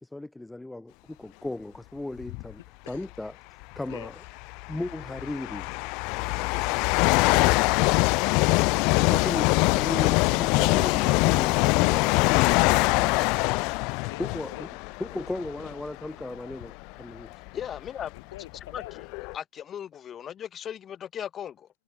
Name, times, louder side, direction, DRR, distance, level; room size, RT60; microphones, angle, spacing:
voice 1, 0.0-2.6 2.9-3.3 3.8-4.1 4.7-5.7 9.1-13.3 14.2-14.7 15.0-17.3, left 2 dB, 5° left, 2.2 m, -36 dB
sound 1, 2.2-2.5 3.6-3.7 4.5-15.9 16.5-16.7 17.5-17.6 17.8-19.3, left 29 dB, 55° left, 0.3 m, -23 dB
voice 2, 17.5-18.1 18.7-18.8 19.3-21.7, left 9 dB, 30° left, 0.9 m, -37 dB
voice 3, 18.1-19.1, left 16 dB, 70° left, 4.8 m, -44 dB
hypercardioid pair, 105°, 0 cm